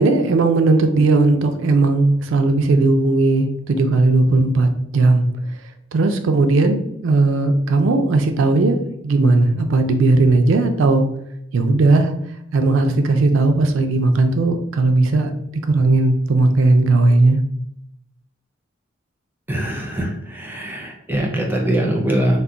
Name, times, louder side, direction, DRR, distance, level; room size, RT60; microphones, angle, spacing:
voice 1, 0.0-5.3 5.9-8.8 9.0-11.1 11.5-12.1 12.5-15.3 15.7-17.4, right 2 dB, 70° right, 7 dB, 0.4 m, -16 dB
voice 2, 19.5-22.4, right 1 dB, 10° right, -1 dB, 0.5 m, -22 dB
2.3 x 2.1 x 3.7 m, 0.75 s
head